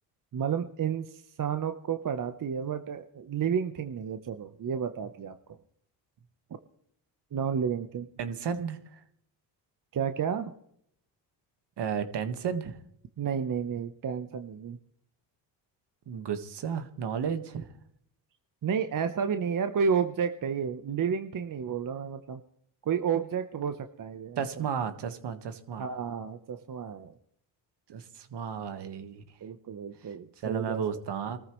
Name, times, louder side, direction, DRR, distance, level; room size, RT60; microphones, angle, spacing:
voice 1, 0.3-5.3 7.3-8.1 9.9-10.5 13.2-14.8 18.6-22.4 22.8-24.4 25.8-27.1 29.4-30.8, right 7 dB, 40° right, 8 dB, 1.0 m, -31 dB
voice 2, 8.2-9.0 11.8-12.8 16.1-17.7 24.4-25.9 27.9-29.2 30.0-30.1 30.4-31.4, right 7 dB, 60° right, 9 dB, 1.7 m, -33 dB
23.5 x 14.0 x 3.2 m, 0.69 s
supercardioid pair, 70°, 47 cm